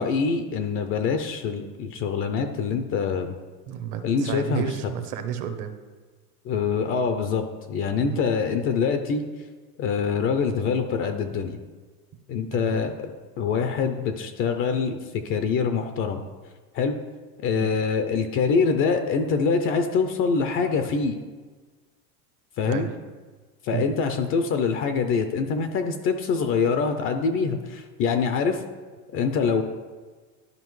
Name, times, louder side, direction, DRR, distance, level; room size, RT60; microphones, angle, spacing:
voice 1, 0.0-3.3 4.0-4.7 6.4-9.2 9.8-11.6 12.3-16.2 16.7-17.0 17.4-21.2 22.6-22.9 23.6-28.6 29.1-29.6, left 5 dB, 30° left, 7 dB, 0.4 m, -25 dB
voice 2, 3.7-5.7 8.0-8.2 12.5-12.8 17.6-17.8 22.6-22.9 23.7-23.9, right 9 dB, 45° right, 8 dB, 0.8 m, -31 dB
12.0 x 4.9 x 3.1 m, 1.4 s
supercardioid pair, 140°, 44 cm